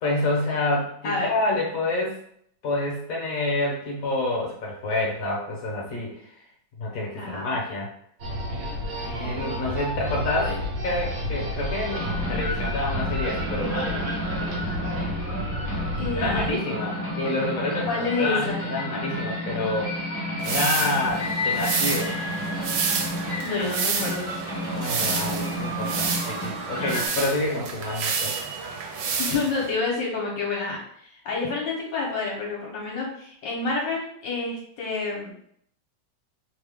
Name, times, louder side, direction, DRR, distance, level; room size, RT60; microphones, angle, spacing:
voice 1, 0.0-2.1 2.6-6.3 6.8-7.9 9.0-10.5 10.8-14.0 16.1-20.0 20.4-22.1 24.7-28.3, left 2 dB, 55° left, -2 dB, 1.1 m, -28 dB
voice 2, 7.2-7.5 10.4-10.6 15.9-16.9 17.9-18.7 23.4-24.3 26.8-27.0 29.2-35.3, left 3 dB, 70° left, -3 dB, 1.4 m, -29 dB
sound 1, 8.2-16.5, equal, 60° right, 1.1 m, -31 dB
sound 2, 11.9-27.1, left 1 dB, 20° left, 0.5 m, -31 dB
sound 3, 20.4-29.7, right 5 dB, 80° right, 1.3 m, -29 dB
3.2 x 2.1 x 3.4 m, 0.67 s
omnidirectional pair, 2.2 m